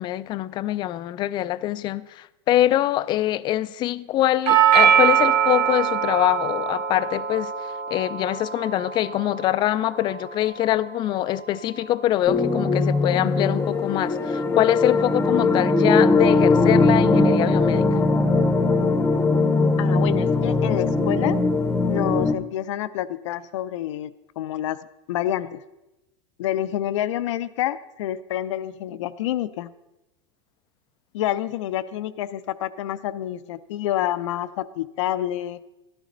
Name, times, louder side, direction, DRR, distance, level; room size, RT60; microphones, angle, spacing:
voice 1, 0.0-18.0, left 13 dB, 30° left, 0.3 m, -24 dB
Doorbell, 4.5-12.5, right 9 dB, 50° right, 1.9 m, -24 dB
sound 1, 12.3-22.3, left 3 dB, 15° left, 0.8 m, -20 dB
voice 2, 19.8-21.4 21.9-24.8 25.1-25.6 26.4-29.7 31.1-35.6, left 12 dB, 80° left, 0.6 m, -28 dB
12.5 x 11.5 x 3.9 m
supercardioid pair, 140°, 15 cm